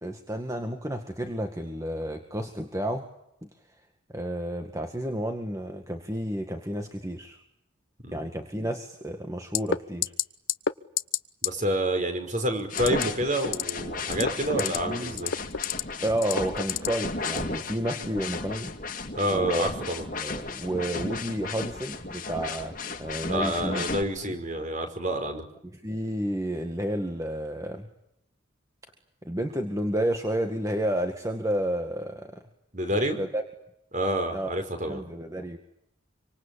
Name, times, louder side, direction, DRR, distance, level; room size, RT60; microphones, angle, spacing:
voice 1, 0.0-3.1 3.4-3.5 4.1-7.4 8.1-10.1 14.6-15.2 16.0-18.7 19.3-19.7 20.2-22.7 23.0-23.8 24.2-24.4 25.7-27.9 29.2-32.4 33.2-33.4 34.3-34.6 34.9-35.6, right 1 dB, 15° right, 5 dB, 1.9 m, -31 dB
sound 1, 9.5-9.8 10.0-10.2 10.5-10.7 11.0-11.2 11.4-11.5 12.7-13.0 13.4-13.7 14.1-14.8 15.1-15.8 16.2-16.9 17.3-17.4, left 9 dB, 75° left, 1.0 m, -26 dB
voice 2, 11.4-15.3 19.1-20.0 23.3-25.4 32.7-33.2 33.9-35.0, equal, 35° right, 7 dB, 5.5 m, -28 dB
sound 2, 12.7-24.0, left 3 dB, 40° left, 2.2 m, -34 dB
26.5 x 25.5 x 8.7 m, 0.78 s
head